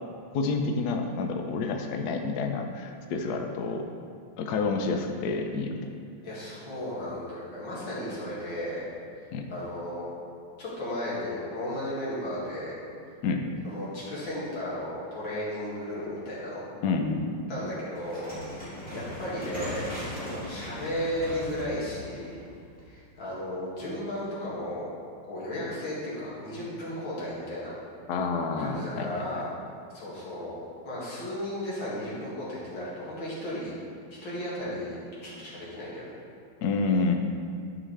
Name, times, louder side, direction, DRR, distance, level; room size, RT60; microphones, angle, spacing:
voice 1, 0.3-3.9 4.4-5.8 9.3-9.5 13.2-13.5 16.8-17.4 28.1-29.4 36.6-37.2, left 4 dB, 70° left, 4 dB, 1.0 m, -29 dB
voice 2, 6.2-8.8 9.2-10.0 10.6-12.8 13.6-16.7 17.5-22.4 22.9-24.9 25.2-27.7 28.6-29.5 29.9-30.6 30.8-33.7 34.2-36.1, left 1 dB, 85° left, -8 dB, 2.7 m, -35 dB
sound 1, 17.9-23.1, left 1 dB, 5° left, 1.7 m, -39 dB
11.0 x 4.9 x 3.2 m, 2.3 s
omnidirectional pair, 2.1 m